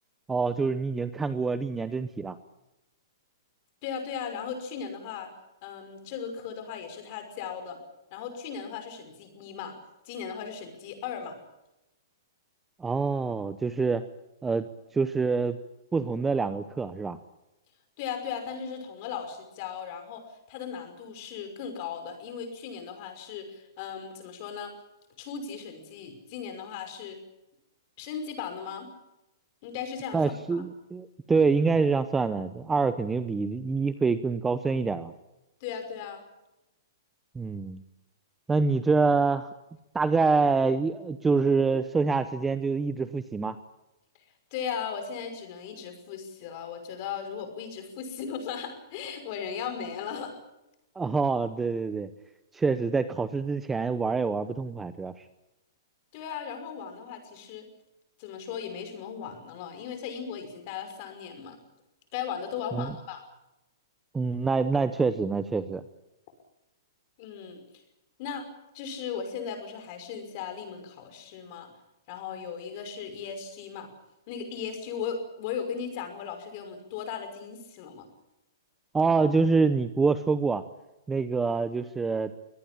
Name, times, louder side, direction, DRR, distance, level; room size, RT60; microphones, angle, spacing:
voice 1, 0.3-2.4 12.8-14.1 14.4-14.7 14.9-15.6 15.9-17.2 30.1-35.1 37.3-37.8 38.5-39.5 39.9-43.6 51.0-52.1 52.5-55.2 62.7-62.9 64.1-65.8 78.9-80.6 81.1-82.3, right 4 dB, 5° right, 12 dB, 0.7 m, -26 dB
voice 2, 3.8-5.3 5.6-7.8 8.1-9.7 10.0-11.4 18.0-20.2 20.5-24.7 25.2-27.2 28.0-28.9 29.6-30.7 35.6-36.2 44.5-50.4 56.1-57.7 58.2-61.6 62.1-63.2 67.2-67.6 68.2-68.5 68.7-71.7 72.1-73.9 74.3-78.1, left 7 dB, 35° left, 7 dB, 5.8 m, -37 dB
24.0 x 18.5 x 8.7 m, 0.94 s
hypercardioid pair, 165°, 2 cm